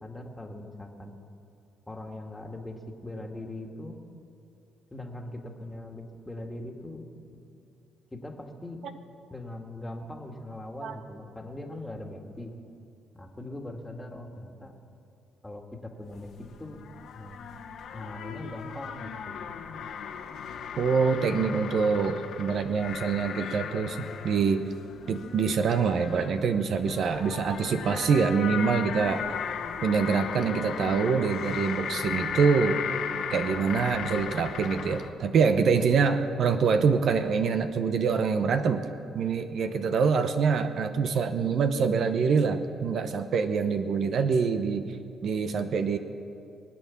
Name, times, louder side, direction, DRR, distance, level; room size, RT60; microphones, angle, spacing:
voice 1, 0.0-1.1 1.9-4.0 4.9-7.4 8.1-8.8 9.3-12.5 13.1-14.7 15.4-16.3 16.6-16.8 17.1-17.5 17.9-19.5 26.9-27.5 36.0-36.4, left 1 dB, 15° left, 2 dB, 2.0 m, -41 dB
sound 1, 16.1-35.1, left 7 dB, 75° left, 1.4 m, -36 dB
voice 2, 20.8-24.7 25.1-29.2 29.8-32.8 33.3-38.9 39.1-46.0, right 5 dB, 65° right, 9 dB, 0.9 m, -25 dB
23.0 x 8.7 x 7.2 m, 2.6 s
cardioid pair, 90°, 0 cm